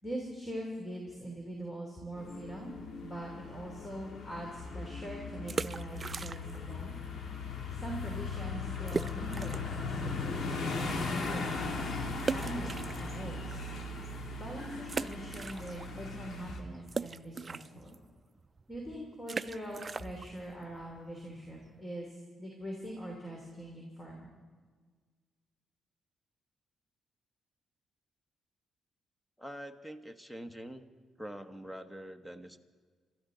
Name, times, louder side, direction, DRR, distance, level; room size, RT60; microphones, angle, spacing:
voice 1, 0.0-6.9 7.7-11.8 12.3-13.7 14.4-17.9 18.7-24.3, right 1 dB, 20° left, -1 dB, 3.0 m, -42 dB
sound 1, 2.2-16.6, left 3 dB, 65° left, 1.8 m, -38 dB
sound 2, 5.4-6.7 7.0-7.1 7.7-7.8 8.1-8.2 8.9-9.8 10.3-10.4 12.2-13.5 14.0-14.1 14.8-16.0 16.3-21.8, right 4 dB, 35° right, 0.3 m, -39 dB
voice 2, 29.4-30.9 31.2-32.6, equal, 5° left, 9 dB, 1.0 m, -45 dB
26.0 x 13.5 x 3.9 m, 1.5 s
cardioid pair, 85°, 0 cm